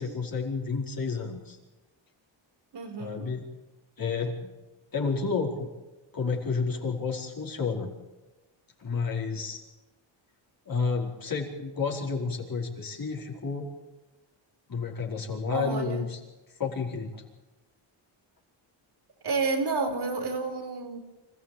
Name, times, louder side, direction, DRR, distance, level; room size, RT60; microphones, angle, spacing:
voice 1, 0.0-1.6 3.0-3.4 4.0-4.5 4.9-5.7 6.1-7.9 8.8-9.6 10.7-13.7 14.7-16.2 16.6-17.2, left 4 dB, 45° left, 0 dB, 4.8 m, -30 dB
voice 2, 2.7-3.3 15.5-16.0 19.2-21.0, right 4 dB, 55° right, 7 dB, 4.6 m, -30 dB
26.0 x 14.5 x 8.8 m, 1.1 s
cardioid pair, 85°, 49 cm